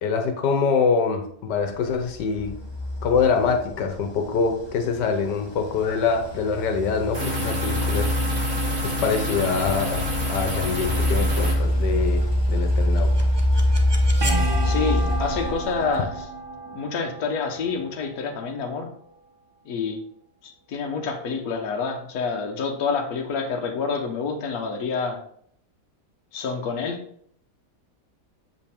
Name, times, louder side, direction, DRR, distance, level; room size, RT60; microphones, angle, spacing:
voice 1, 0.0-2.5 3.0-8.2 8.8-13.1, left 5 dB, 85° left, 5 dB, 1.5 m, -24 dB
sound 1, 1.8-16.2, left 1 dB, 20° left, 0.9 m, -25 dB
sound 2, 7.1-11.5, equal, 45° right, 2.5 m, -28 dB
sound 3, 12.8-18.6, right 2 dB, 30° right, 0.4 m, -32 dB
voice 2, 14.6-16.3 16.7-18.9 19.6-20.1 20.4-25.2 26.3-27.0, left 5 dB, 65° left, 3 dB, 1.4 m, -28 dB
7.3 x 5.2 x 3.5 m, 0.64 s
omnidirectional pair, 1.8 m